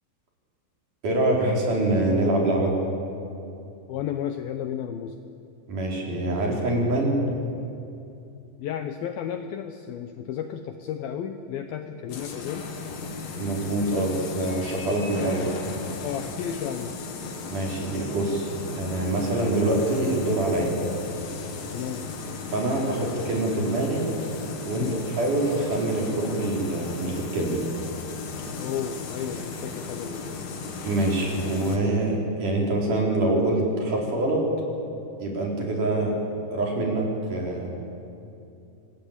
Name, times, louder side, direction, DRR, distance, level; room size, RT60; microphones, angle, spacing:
voice 1, 1.0-2.8 5.7-7.2 13.4-15.5 17.5-20.8 22.5-24.1 24.6-24.9 25.2-27.6 30.8-34.5 35.2-36.1 36.5-37.7, right 2 dB, 45° right, -1 dB, 5.2 m, -25 dB
voice 2, 3.9-5.2 8.6-12.7 15.2-15.5 16.0-16.9 21.7-22.1 24.8-25.0 28.4-30.4, left 9 dB, 90° left, 7 dB, 2.0 m, -33 dB
sound 1, 12.1-31.8, left 4 dB, 55° left, 3.5 m, -36 dB
25.0 x 20.0 x 8.6 m, 2.7 s
omnidirectional pair, 5.4 m